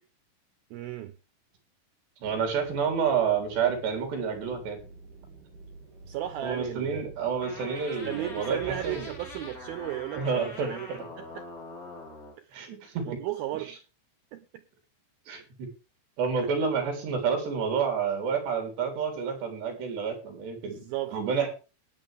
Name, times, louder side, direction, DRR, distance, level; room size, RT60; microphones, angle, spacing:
voice 1, 0.7-1.1 6.1-7.1 8.0-10.9 11.2-11.5 12.4-12.6 13.1-13.8 14.3-14.6 20.6-21.2, right 13 dB, 90° right, 2.2 m, -35 dB
sound 1, 2.2-11.5, right 3 dB, 50° right, 4.5 m, -49 dB
voice 2, 2.2-4.8 6.4-9.1 10.2-11.1 12.5-13.1 15.3-15.7 16.2-21.5, right 6 dB, 65° right, 5.6 m, -29 dB
sound 2, 7.4-12.4, left 2 dB, 20° left, 3.4 m, -43 dB
19.5 x 9.2 x 3.4 m
omnidirectional pair, 5.3 m